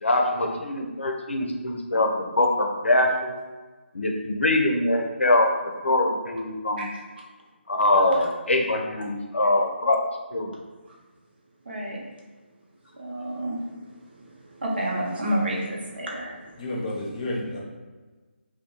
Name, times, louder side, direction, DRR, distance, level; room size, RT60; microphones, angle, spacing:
voice 1, 0.0-3.3 3.9-5.5 5.8-6.9 7.7-10.0 10.3-10.5, left 2 dB, 85° left, 2 dB, 0.6 m, -23 dB
voice 2, 11.6-12.0 13.0-13.6 14.5-16.5, right 1 dB, 60° right, -3 dB, 0.9 m, -29 dB
voice 3, 16.6-17.6, left 1 dB, 30° left, -3 dB, 0.7 m, -30 dB
2.8 x 2.2 x 3.7 m, 1.3 s
figure-of-eight pair, 155°, 6 cm